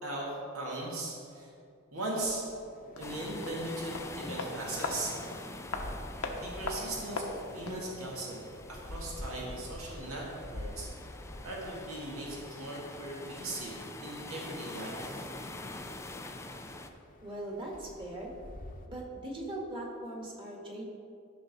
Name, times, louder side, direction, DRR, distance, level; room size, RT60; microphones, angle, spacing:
voice 1, 0.0-1.5 1.9-2.4 3.0-5.1 6.4-8.4 8.7-10.2 10.5-10.9 11.4-15.3, right 2 dB, 80° right, -3 dB, 1.9 m, -38 dB
sound 1, 2.2-18.9, left 1 dB, 40° left, 0.9 m, -49 dB
sound 2, 2.9-8.2, left 3 dB, 85° left, 1.1 m, -40 dB
sound 3, 3.0-16.9, left 2 dB, 15° left, 0.4 m, -45 dB
voice 2, 17.2-18.3 18.9-20.8, right 1 dB, 25° right, -2 dB, 1.7 m, -40 dB
14.0 x 5.6 x 4.1 m, 2.5 s
head